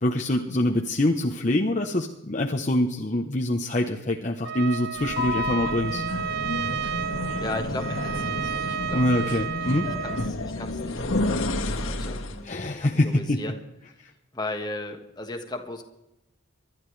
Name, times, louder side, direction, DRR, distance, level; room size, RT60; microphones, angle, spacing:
voice 1, 0.0-6.0 8.9-9.9 12.4-13.4, left 1 dB, 35° left, 1 dB, 0.9 m, -25 dB
Trumpet, 4.4-10.3, right 8 dB, 50° right, 0.4 m, -32 dB
sound 1, 5.0-12.5, left 2 dB, 75° left, 1.7 m, -30 dB
voice 2, 7.4-9.4 9.8-13.6 13.9-14.0 14.3-15.8, left 2 dB, 20° left, 4 dB, 1.5 m, -37 dB
25.0 x 12.0 x 3.3 m, 0.90 s
head